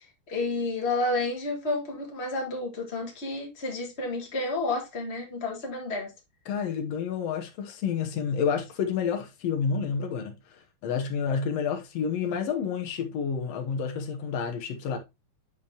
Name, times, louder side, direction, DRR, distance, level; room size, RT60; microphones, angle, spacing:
voice 1, 0.0-6.1, left 2 dB, 55° left, 0.7 m, -30 dB
voice 2, 6.5-15.0, left 6 dB, 75° left, 1.5 m, -29 dB
8.7 x 5.1 x 2.8 m
omnidirectional pair, 4.3 m